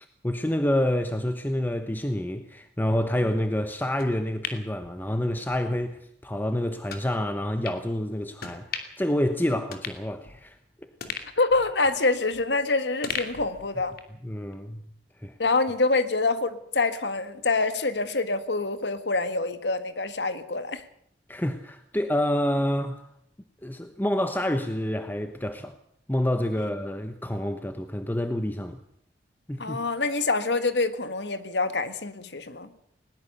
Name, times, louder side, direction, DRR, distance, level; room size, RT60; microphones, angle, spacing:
voice 1, 0.0-10.6 10.8-10.9 14.2-14.9 15.2-15.3 21.3-23.1 23.6-25.7 26.1-28.8 29.5-29.8, left 1 dB, 10° left, 1.0 m, -28 dB
sound 1, 4.0-5.6 6.0-6.1 6.9-7.1 7.6-7.8 8.4-9.1 9.4-9.5 9.7-10.6 11.0-12.6 13.0-14.2 14.5-14.6, left 6 dB, 60° left, 2.6 m, -38 dB
voice 2, 11.4-13.9 15.4-20.8 26.6-26.7 29.6-32.7, left 3 dB, 80° left, 1.7 m, -26 dB
20.5 x 19.5 x 6.9 m
head